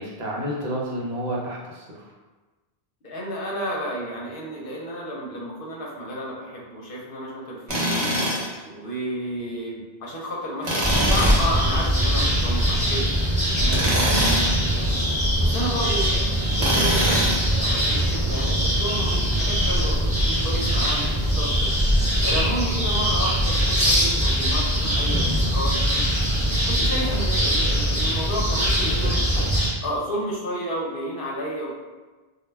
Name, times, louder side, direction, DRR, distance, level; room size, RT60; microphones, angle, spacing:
voice 1, 0.0-1.8 28.8-29.5, equal, 75° right, -4 dB, 0.9 m, -30 dB
voice 2, 3.0-7.9 8.6-13.1 13.4-14.9 15.4-16.1 16.6-17.3 17.6-21.7 22.2-26.1 26.6-29.3 29.8-31.7, equal, 65° left, -3 dB, 0.7 m, -31 dB
Tools, 7.7-8.5 10.6-11.5 13.7-14.6 16.6-17.5, right 1 dB, 45° right, 0.7 m, -23 dB
sound 1, 10.8-29.7, equal, 10° right, 0.7 m, -22 dB
2.2 x 2.1 x 3.2 m, 1.3 s
omnidirectional pair, 1.1 m